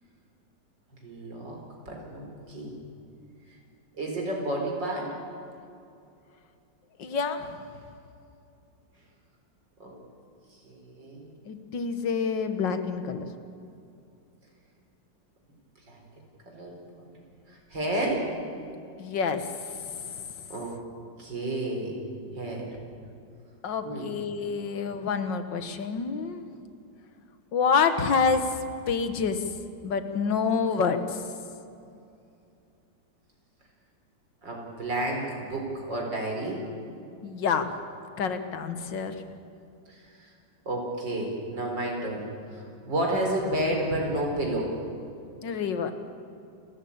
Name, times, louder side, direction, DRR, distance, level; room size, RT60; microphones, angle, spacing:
voice 1, 1.0-1.6 1.9-2.8 4.0-5.2 9.8-9.9 10.6-11.3 15.9-16.0 16.5-16.8 17.5-18.3 20.5-20.8 21.2-22.0 22.4-22.7 23.8-24.1 34.4-36.7 39.9-40.3 40.7-44.7, right 1 dB, 75° right, 0 dB, 5.1 m, -31 dB
voice 2, 7.0-7.6 11.5-13.3 19.0-20.1 23.6-26.5 27.5-28.6 28.9-29.4 29.8-31.2 37.2-37.7 38.2-39.2 45.4-45.9, left 5 dB, 80° left, 9 dB, 2.0 m, -27 dB
29.5 x 14.5 x 8.7 m, 2.6 s
omnidirectional pair, 2.0 m